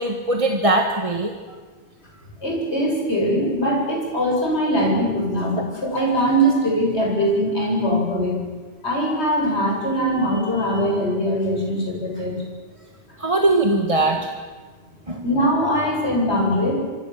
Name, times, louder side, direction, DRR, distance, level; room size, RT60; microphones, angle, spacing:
voice 1, 0.0-1.3 13.2-14.3 15.1-15.2, right 2 dB, 30° right, 3 dB, 1.7 m, -20 dB
voice 2, 2.4-8.4 8.8-12.4 15.2-16.7, equal, 80° left, -1 dB, 8.0 m, -21 dB
25.5 x 25.0 x 7.7 m, 1.5 s
omnidirectional pair, 1.1 m